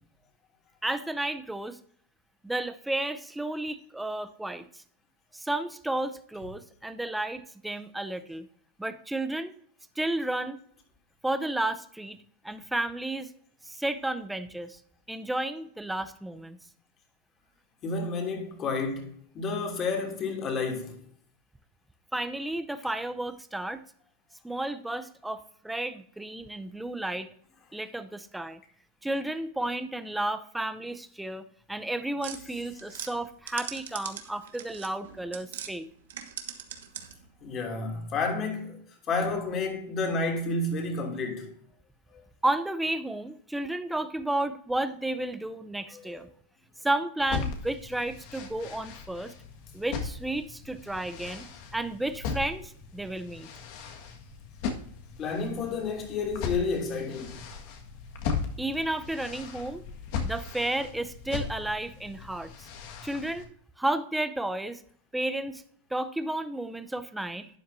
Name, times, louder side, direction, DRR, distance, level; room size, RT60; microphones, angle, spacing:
voice 1, 0.8-1.8 2.4-4.8 5.3-8.5 8.8-9.5 10.0-10.6 11.2-12.2 12.4-13.3 13.6-14.8 15.1-16.6 22.1-23.8 24.4-27.3 27.7-28.6 29.0-31.4 31.7-35.9 42.4-46.3 46.8-49.3 49.7-51.5 51.7-53.5 58.6-59.8 60.2-62.7 63.0-63.5 63.8-64.8 65.1-65.6 65.9-67.6, right 1 dB, 5° right, 0.7 m, -32 dB
voice 2, 17.8-21.0 37.4-38.8 39.1-41.5 42.1-42.2 45.9-46.2 55.2-57.4, left 3 dB, 35° left, 2.8 m, -30 dB
sound 1, 32.2-35.7 36.0-37.3, right 9 dB, 85° right, 1.2 m, -41 dB
sound 2, 47.2-63.4, left 5 dB, 60° left, 1.8 m, -38 dB
12.0 x 9.2 x 2.7 m
supercardioid pair, 130°, 0 cm